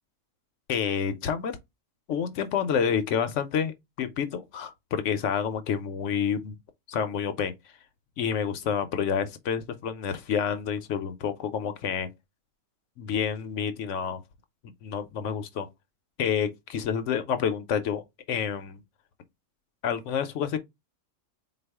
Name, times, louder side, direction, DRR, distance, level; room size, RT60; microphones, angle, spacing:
voice 1, 0.7-1.5 2.1-6.6 6.9-7.5 8.2-12.1 13.0-14.2 14.8-15.7 16.2-18.0 18.3-18.8 19.8-20.6, left 7 dB, 70° left, 0.9 m, -28 dB
4.1 x 2.3 x 3.3 m
omnidirectional pair, 1.3 m